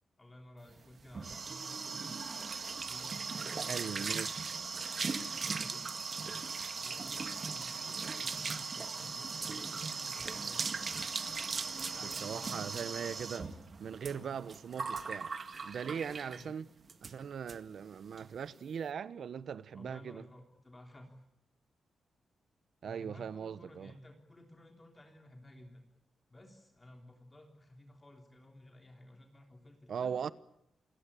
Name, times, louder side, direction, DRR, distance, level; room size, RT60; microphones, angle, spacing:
voice 1, 0.2-2.5 2.8-4.2 5.1-5.8 6.8-10.9 11.7-13.5 14.1-14.4 15.8-16.5 19.7-21.1 22.8-25.8 26.3-30.1, left 1 dB, 15° left, 3.3 m, -55 dB
sound 1, 0.8-16.5 16.9-17.1 17.5-17.6 17.9-18.2, right 5 dB, 35° right, 1.9 m, -38 dB
voice 2, 3.6-4.4 12.2-13.5 13.8-15.3 15.6-16.7 17.0-20.2 22.8-23.9 29.9-30.3, right 7 dB, 60° right, 1.0 m, -40 dB
28.5 x 22.0 x 8.5 m
wide cardioid pair, 160°, 0 cm